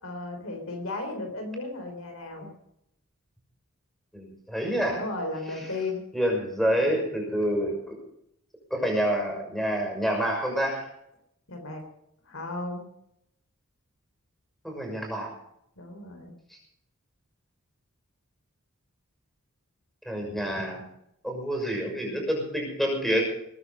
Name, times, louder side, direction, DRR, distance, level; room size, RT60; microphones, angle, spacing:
voice 1, 0.0-2.5 4.9-6.0 11.5-11.8 12.3-12.9 15.8-16.3, left 2 dB, 65° left, 4 dB, 3.6 m, -35 dB
voice 2, 4.1-5.0 6.1-7.8 8.7-10.8 14.6-15.3 20.1-20.8 21.2-23.2, equal, ahead, 1 dB, 6.2 m, -27 dB
21.0 x 10.5 x 5.4 m, 0.76 s
head